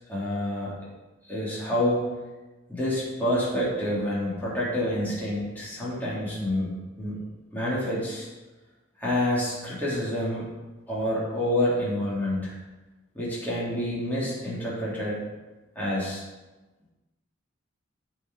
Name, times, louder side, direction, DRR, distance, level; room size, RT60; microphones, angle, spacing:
voice 1, 0.1-0.7 1.3-2.1 2.7-6.7 7.0-7.2 7.5-8.3 9.0-10.5 10.9-12.6 13.1-15.2 15.7-16.2, left 1 dB, 10° left, -8 dB, 3.0 m, -28 dB
13.5 x 5.0 x 4.7 m, 1.2 s
head